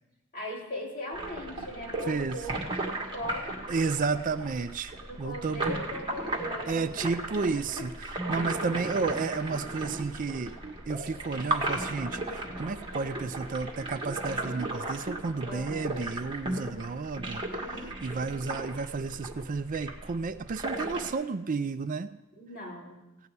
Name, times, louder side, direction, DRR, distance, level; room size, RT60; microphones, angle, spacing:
voice 1, 0.3-3.5 4.1-4.2 5.1-7.9 8.4-8.8 15.5-16.0 22.3-23.0, equal, 45° left, -4 dB, 3.6 m, -39 dB
sound 1, 1.1-21.1, right 2 dB, 25° right, 1.9 m, -36 dB
voice 2, 2.1-2.4 3.7-5.8 6.7-7.9 8.3-10.5 10.9-17.4 17.8-22.1, right 4 dB, 40° right, 11 dB, 0.4 m, -32 dB
16.5 x 5.6 x 9.6 m, 0.98 s
head